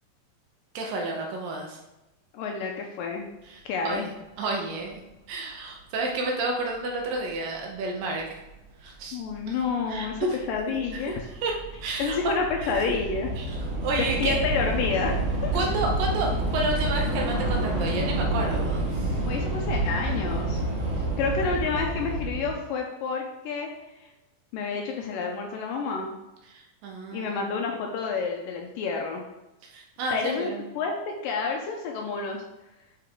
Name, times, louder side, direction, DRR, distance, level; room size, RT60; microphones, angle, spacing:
voice 1, 0.7-1.8 3.5-4.1 4.4-5.0 5.3-8.2 8.8-9.2 9.5-9.6 9.9-10.4 10.9-11.1 11.4-11.5 11.8-12.3 12.6-12.9 13.4-13.6 13.8-14.5 15.5-19.1 26.5-27.4 29.7-30.6, right 2 dB, 70° right, 0 dB, 2.5 m, -30 dB
voice 2, 2.3-3.2 3.7-4.1 9.1-11.3 12.0-13.3 14.0-15.5 19.2-20.6 21.2-23.7 24.0-24.1 24.5-26.2 27.1-29.2 30.1-32.4, left 5 dB, 75° left, 2 dB, 2.1 m, -29 dB
Train / Subway metro underground, 8.5-8.6 9.4-9.7 9.9-22.5, right 1 dB, 40° right, 3.6 m, -28 dB
9.1 x 4.8 x 3.6 m, 1.0 s
omnidirectional pair, 4.4 m